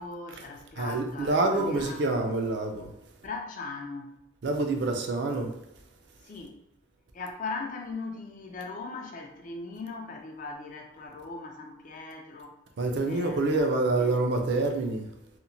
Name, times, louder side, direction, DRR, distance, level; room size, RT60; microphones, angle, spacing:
voice 1, 0.0-2.2 3.2-4.2 6.2-6.6 7.1-12.5 13.0-14.2, left 3 dB, 40° left, 2 dB, 0.4 m, -39 dB
voice 2, 0.8-2.9 4.4-5.5 12.8-15.1, right 2 dB, 60° right, 3 dB, 0.4 m, -27 dB
2.9 x 2.1 x 2.5 m, 0.83 s
head